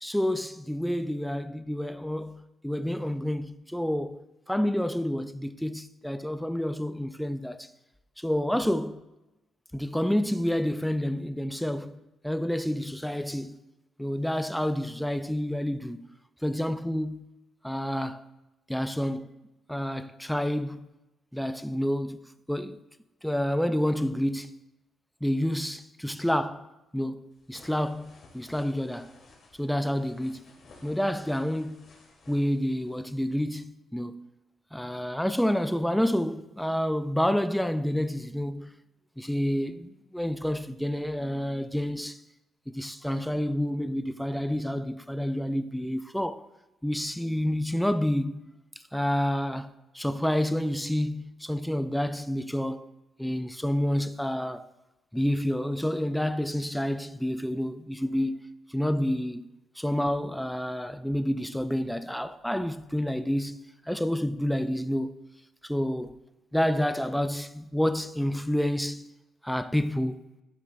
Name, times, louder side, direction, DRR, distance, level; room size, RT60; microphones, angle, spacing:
voice 1, 0.0-4.2 4.5-7.7 8.2-9.0 9.7-12.0 12.2-13.6 14.0-16.1 16.4-17.3 17.6-18.2 18.7-19.3 19.7-20.9 21.3-22.2 22.5-22.8 23.2-24.5 25.2-29.1 29.6-30.5 30.8-31.9 32.3-34.3 34.7-38.8 39.2-42.2 42.7-46.4 46.8-48.4 48.9-52.8 53.2-54.7 55.1-58.4 58.7-59.5 59.8-63.6 63.9-65.2 65.6-66.2 66.5-69.2 69.4-70.2, equal, ahead, 0.3 m, -29 dB
sound 1, 27.3-33.2, left 3 dB, 60° left, 1.8 m, -56 dB
11.5 x 6.2 x 2.6 m
cardioid pair, 90°, 0 cm